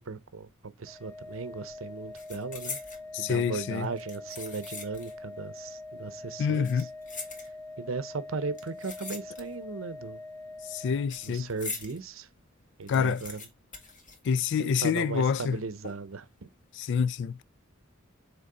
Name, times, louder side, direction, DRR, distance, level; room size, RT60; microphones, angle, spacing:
voice 1, 0.0-2.8 3.2-6.9 7.8-10.2 11.2-12.3 12.8-13.5 14.6-16.5, right 4 dB, 70° right, 0.7 m, -37 dB
Organ, 0.9-11.5, left 2 dB, 5° left, 0.9 m, -44 dB
sound 1, 1.1-1.4 1.7-3.1 3.8-5.2 5.5-5.6 6.4-7.9 8.5-9.8 10.0-12.0 12.4-12.5 12.7-14.8 15.1-15.2 15.8-16.3 16.7-16.9, left 4 dB, 40° left, 1.9 m, -43 dB
voice 2, 3.1-3.9 6.4-6.9 10.7-11.5 12.9-13.2 14.3-15.6 16.8-17.4, left 6 dB, 60° left, 0.3 m, -27 dB
6.7 x 4.1 x 3.8 m
head